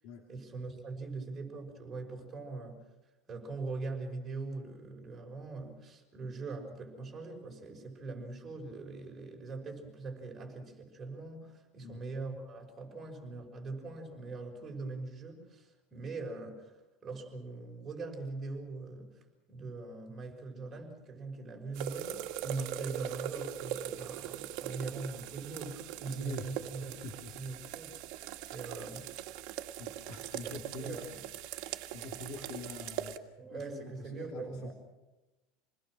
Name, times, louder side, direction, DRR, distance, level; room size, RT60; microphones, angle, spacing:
voice 1, 0.3-2.8 3.3-16.7 17.0-26.9 27.3-28.0 28.5-29.1 30.4-31.2 33.4-34.7, right 3 dB, 20° right, 1 dB, 6.1 m, -42 dB
sound 1, 21.7-33.2, right 12 dB, 60° right, 1.8 m, -41 dB
voice 2, 26.2-26.5 27.0-27.4 28.3-28.6 29.0-29.2 29.8-31.1 31.6-34.7, left 3 dB, 55° left, 0 dB, 3.2 m, -46 dB
27.5 x 20.5 x 6.4 m, 1.1 s
supercardioid pair, 145°, 0 cm